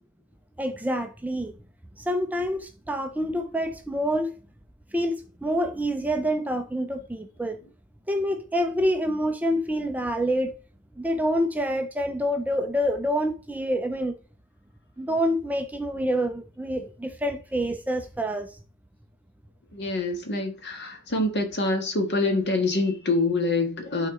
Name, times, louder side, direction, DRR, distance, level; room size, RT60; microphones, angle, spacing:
voice 1, 0.6-1.6 2.0-4.4 4.9-7.6 8.1-10.5 11.0-14.2 15.0-18.6, equal, 5° right, 0.5 m, -27 dB
voice 2, 19.7-24.1, left 2 dB, 50° left, 1.6 m, -25 dB
12.0 x 4.1 x 3.7 m
head